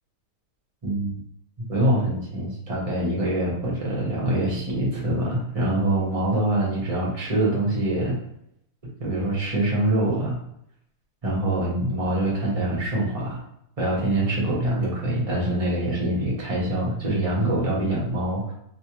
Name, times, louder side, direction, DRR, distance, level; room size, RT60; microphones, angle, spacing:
voice 1, 0.8-1.2 1.7-8.2 9.0-10.4 11.2-13.4 13.8-18.5, right 1 dB, 25° right, -5 dB, 1.2 m, -24 dB
3.2 x 2.9 x 2.9 m, 0.75 s
omnidirectional pair, 1.7 m